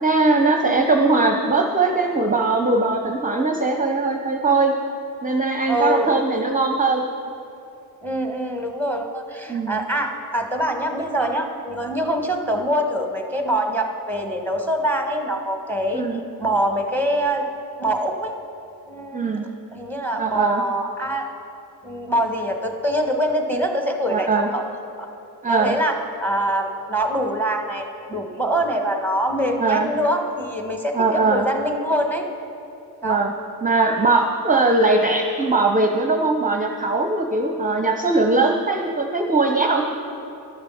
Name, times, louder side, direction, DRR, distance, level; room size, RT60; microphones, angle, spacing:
voice 1, 0.0-4.7 5.2-7.0 9.5-9.8 15.9-16.2 19.1-19.5 20.2-20.6 24.1-24.5 25.4-25.7 29.6-29.9 30.9-31.5 33.0-33.3 33.6-39.9, right 3 dB, 20° right, 3 dB, 0.8 m, -20 dB
voice 2, 5.7-6.4 8.0-16.0 16.4-17.4 17.8-18.3 18.9-19.2 19.7-21.3 21.8-24.6 25.0-25.1 25.5-27.8 28.1-32.2 33.0-33.2, right 1 dB, 5° left, 3 dB, 1.5 m, -24 dB
12.0 x 6.7 x 5.7 m, 2.8 s
cardioid pair, 50°, 44 cm